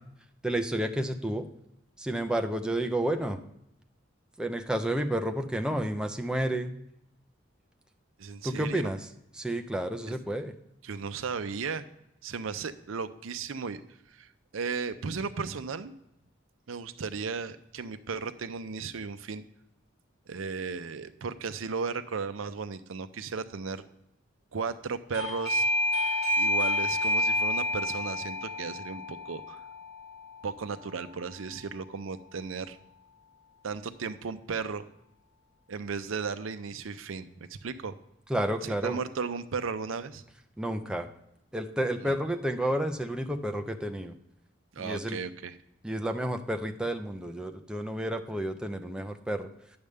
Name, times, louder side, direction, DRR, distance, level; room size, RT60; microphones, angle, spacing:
voice 1, 0.4-1.5 2.0-3.4 4.4-6.7 8.4-9.0 9.4-10.5 38.3-39.0 40.6-41.1 41.5-44.1 44.8-45.2 45.8-49.5, right 1 dB, 5° right, 5 dB, 0.5 m, -30 dB
voice 2, 8.2-8.9 10.1-10.2 10.8-11.9 12.2-13.8 14.1-15.9 16.7-19.5 20.3-23.8 24.5-25.7 26.4-29.6 30.4-32.8 33.6-34.8 35.7-38.0 38.6-40.2 42.0-42.2 44.7-45.6, right 5 dB, 90° right, 11 dB, 0.6 m, -35 dB
Doorbell, 25.1-31.6, left 1 dB, 60° left, 2.1 m, -30 dB
9.6 x 3.4 x 6.5 m, 0.81 s
head